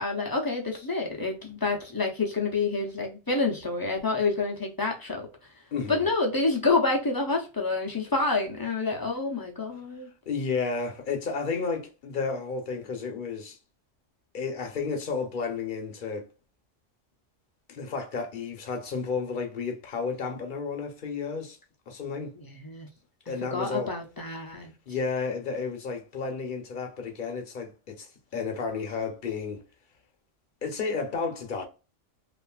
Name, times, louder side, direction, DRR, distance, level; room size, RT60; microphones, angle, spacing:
voice 1, 0.0-5.3 5.9-10.1 22.4-22.9 23.5-24.7, left 3 dB, 30° left, 0.4 m, -28 dB
voice 2, 5.7-6.1 10.3-13.6 14.3-16.3 17.7-21.6 21.9-22.3 23.3-23.9 24.9-29.6 30.6-31.6, left 5 dB, 50° left, 0.8 m, -32 dB
3.0 x 2.4 x 2.3 m
omnidirectional pair, 1.2 m